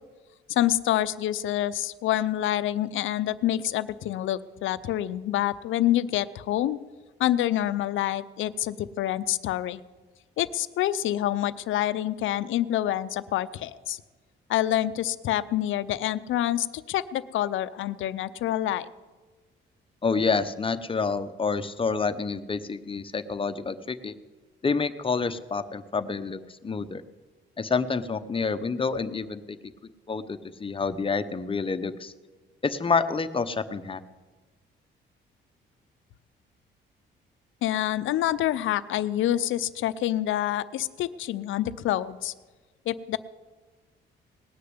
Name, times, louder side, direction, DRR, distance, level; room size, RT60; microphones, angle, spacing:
voice 1, 0.5-6.8 7.2-9.8 10.4-14.0 14.5-18.9 37.6-42.3 42.9-43.2, left 13 dB, 80° left, 14 dB, 0.6 m, -27 dB
voice 2, 20.0-24.1 24.6-27.0 27.6-29.6 30.1-32.1 32.6-34.0, left 4 dB, 25° left, 11 dB, 0.9 m, -28 dB
18.5 x 6.7 x 9.6 m, 1.3 s
cardioid pair, 90°, 20 cm